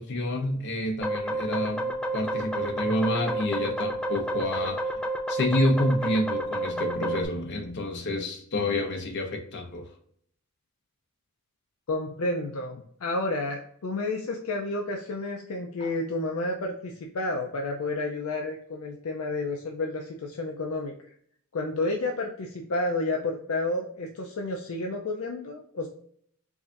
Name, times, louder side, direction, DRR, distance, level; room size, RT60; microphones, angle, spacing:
voice 1, 0.0-4.9 5.3-9.8 15.8-15.9, left 1 dB, 50° left, 2 dB, 0.8 m, -28 dB
sound 1, 1.0-7.2, right 1 dB, 5° left, 0.3 m, -30 dB
voice 2, 11.9-20.9 21.5-25.9, left 2 dB, 70° left, 2 dB, 0.5 m, -30 dB
4.8 x 2.6 x 2.4 m, 0.64 s
head